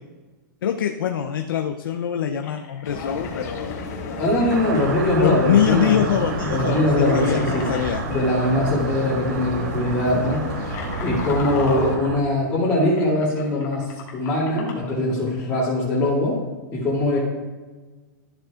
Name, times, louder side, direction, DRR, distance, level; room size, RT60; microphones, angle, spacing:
voice 1, 0.6-3.8 5.2-8.0, left 9 dB, 85° left, 5 dB, 0.6 m, -23 dB
sound 1, 1.8-1.9 2.4-7.8 8.8-9.0 9.3-9.6 10.2-14.9, left 5 dB, 30° left, 1.7 m, -38 dB
sound 2, 2.8-12.0, left 3 dB, 50° left, 1.7 m, -32 dB
voice 2, 4.0-7.7 8.1-10.7 11.0-16.4 16.7-17.2, left 1 dB, 10° left, -11 dB, 2.6 m, -22 dB
sound 3, 4.5-12.2, right 5 dB, 70° right, 0.7 m, -31 dB
13.0 x 7.8 x 2.5 m, 1.3 s
hypercardioid pair, 160°, 11 cm